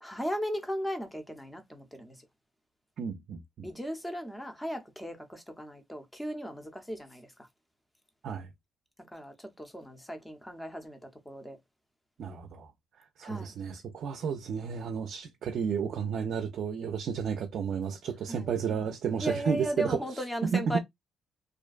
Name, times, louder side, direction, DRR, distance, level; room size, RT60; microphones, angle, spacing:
voice 1, 0.0-2.1 3.6-7.3 9.1-11.0 11.3-11.6 12.2-12.5 13.2-13.5 18.3-18.8 19.2-20.8, equal, 5° left, 0.6 m, -36 dB
voice 2, 3.0-3.7 8.2-8.5 12.2-12.7 13.2-20.8, right 7 dB, 65° right, 0.4 m, -32 dB
2.4 x 2.2 x 2.3 m
cardioid pair, 90°, 0 cm